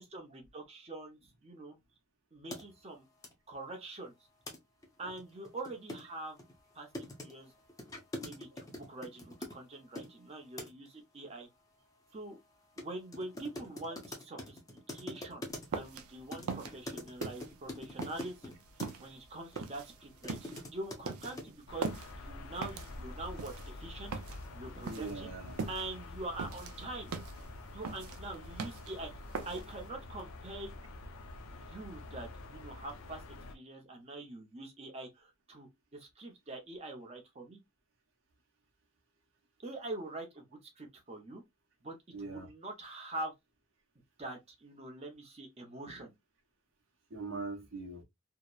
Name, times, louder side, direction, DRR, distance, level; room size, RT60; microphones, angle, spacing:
voice 1, 0.0-1.8 2.3-3.1 3.5-4.1 5.0-6.4 6.7-7.5 8.2-11.5 12.1-12.4 12.8-14.6 14.9-15.4 15.7-18.5 19.0-21.9 22.2-24.1 24.5-25.3 25.7-27.1 27.7-29.1 29.5-30.7 31.5-33.2 33.5-37.6 39.6-40.5 40.8-41.4 41.8-43.3 44.2-46.1, right 2 dB, 30° right, 0.6 m, -44 dB
sound 1, 2.5-2.6 3.2-3.3 4.5-4.6 4.8-4.9 5.2-10.1 10.6-10.9 12.8-12.9 13.1-15.9 16.3-18.9 19.5-19.6 20.0-21.5, left 1 dB, 15° left, 0.5 m, -44 dB
sound 2, 15.5-29.9, right 5 dB, 90° right, 0.4 m, -42 dB
sound 3, 21.7-33.5, left 2 dB, 75° left, 0.5 m, -47 dB
voice 2, 24.9-25.6 42.1-42.5 47.1-48.0, right 3 dB, 65° right, 0.8 m, -41 dB
2.7 x 2.0 x 2.2 m
head